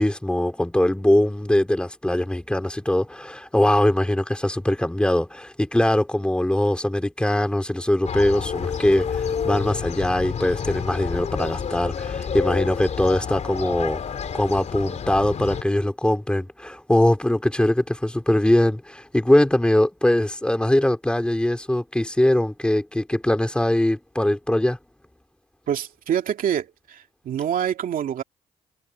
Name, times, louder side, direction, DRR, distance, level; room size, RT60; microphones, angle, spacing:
voice 1, 0.0-24.8, left 1 dB, 5° left, 3.9 m, -22 dB
sound 1, 8.1-15.6, left 7 dB, 45° left, 3.6 m, -29 dB
voice 2, 25.7-28.2, right 9 dB, 65° right, 2.5 m, -26 dB
cardioid pair, 110°, 16 cm